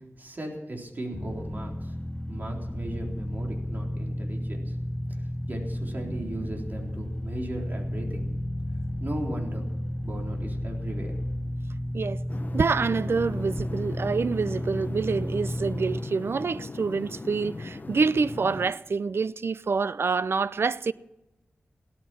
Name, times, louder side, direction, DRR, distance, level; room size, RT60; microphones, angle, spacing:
voice 1, 0.2-2.0 2.3-4.8 5.5-8.3 9.0-9.7 10.0-11.1, right 1 dB, 45° right, 3.9 m, -36 dB
sound 1, 1.1-16.0, left 1 dB, 10° left, 1.1 m, -32 dB
sound 2, 12.3-18.7, left 3 dB, 40° left, 0.8 m, -39 dB
voice 2, 12.5-20.9, right 4 dB, 65° right, 0.5 m, -27 dB
17.0 x 13.5 x 6.2 m
wide cardioid pair, 100°, 4 cm